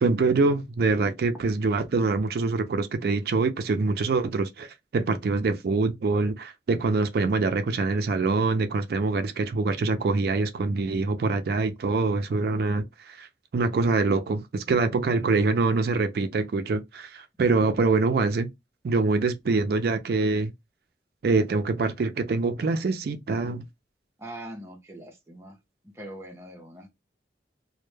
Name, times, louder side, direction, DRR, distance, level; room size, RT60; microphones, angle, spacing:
voice 1, 0.0-13.3 13.5-18.5 18.8-20.5 21.2-23.7, right 3 dB, 60° right, 0.4 m, -25 dB
voice 2, 24.2-25.6 25.9-26.9, right 1 dB, 15° right, 0.6 m, -42 dB
2.1 x 2.1 x 3.1 m
head